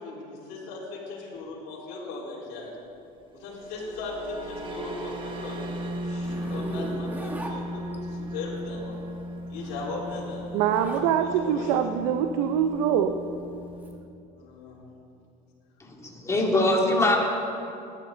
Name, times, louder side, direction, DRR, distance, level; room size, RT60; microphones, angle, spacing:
voice 1, 0.0-2.7 3.3-9.0 9.5-10.7 11.0-11.8 14.4-14.8, left 3 dB, 70° left, -7 dB, 4.1 m, -38 dB
sound 1, 3.3-14.0, equal, 30° right, 1.4 m, -37 dB
Zipper (clothing), 6.2-8.3 9.4-11.1 11.5-13.9, right 1 dB, 10° right, 1.8 m, -38 dB
voice 2, 10.5-13.2, right 9 dB, 85° right, 7 dB, 0.7 m, -24 dB
voice 3, 15.8-17.2, left 2 dB, 15° left, -1 dB, 2.7 m, -23 dB
19.0 x 12.5 x 3.9 m, 2.7 s
supercardioid pair, 115°, 18 cm